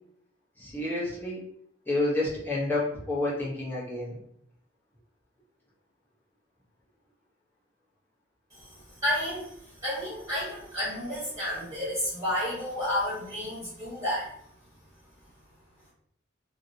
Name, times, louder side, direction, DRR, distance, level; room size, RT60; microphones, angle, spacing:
voice 1, 0.6-1.4 1.9-4.1, left 2 dB, 10° left, -7 dB, 1.0 m, -29 dB
voice 2, 8.5-14.3, left 1 dB, 20° right, -11 dB, 1.3 m, -31 dB
2.8 x 2.8 x 2.7 m, 0.71 s
head